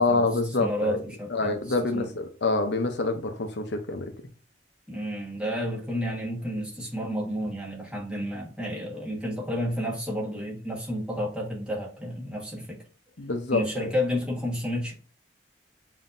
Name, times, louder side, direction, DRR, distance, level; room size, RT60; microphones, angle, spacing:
voice 1, 0.0-1.0 1.3-4.1 13.2-13.9, left 3 dB, 70° left, 0.7 m, -26 dB
voice 2, 0.6-1.6 1.9-2.1 4.9-12.8 13.5-14.9, equal, 5° right, 1.4 m, -31 dB
7.2 x 2.7 x 2.6 m
head